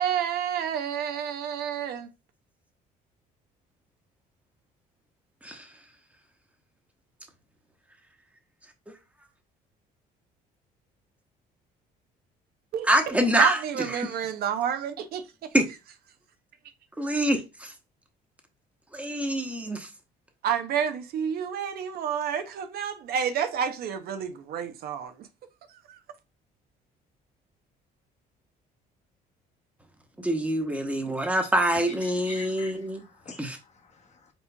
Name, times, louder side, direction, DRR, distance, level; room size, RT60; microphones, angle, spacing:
voice 1, 0.0-2.1 12.7-15.5 20.4-25.3 25.7-26.0, right 8 dB, 65° right, 0.7 m, -30 dB
voice 2, 12.9-13.6 14.0-14.1 15.5-15.6 17.0-17.7 18.9-19.9 30.2-33.0 33.4-33.6, right 1 dB, 10° right, 0.9 m, -25 dB
voice 3, 31.9-34.3, left 4 dB, 40° left, 0.9 m, -46 dB
4.4 x 4.2 x 2.2 m
cardioid pair, 110°, 17 cm